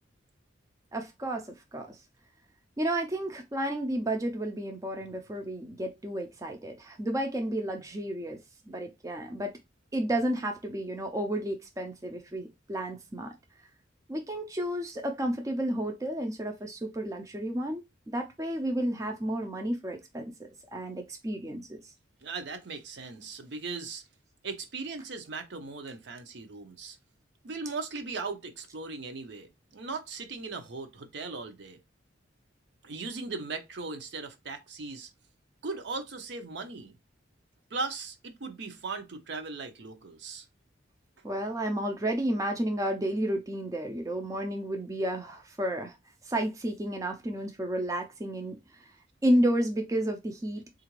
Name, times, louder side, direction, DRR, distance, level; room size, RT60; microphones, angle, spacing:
voice 1, 0.9-2.0 2.8-8.4 8.7-9.5 9.9-13.3 14.1-17.8 18.1-21.8 41.2-46.0 46.2-48.9 49.2-50.6, right 1 dB, 15° right, 0.4 m, -31 dB
voice 2, 22.2-24.0 24.4-27.0 27.4-31.8 32.8-35.1 35.6-36.9 37.7-40.4, right 4 dB, 60° right, 0.6 m, -38 dB
3.7 x 2.4 x 3.0 m
head